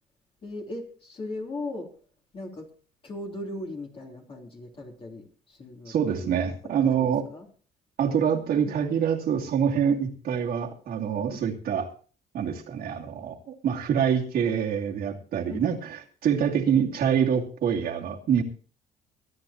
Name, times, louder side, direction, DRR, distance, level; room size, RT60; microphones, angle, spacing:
voice 1, 0.4-1.9 2.3-2.7 3.0-6.4 6.8-7.5 15.5-15.7, left 2 dB, 35° left, 0 dB, 3.4 m, -38 dB
voice 2, 5.9-7.2 8.0-11.9 12.3-13.4 13.6-18.4, right 8 dB, 65° right, -1 dB, 2.6 m, -25 dB
24.5 x 9.8 x 2.9 m, 0.39 s
cardioid pair, 110°, 17 cm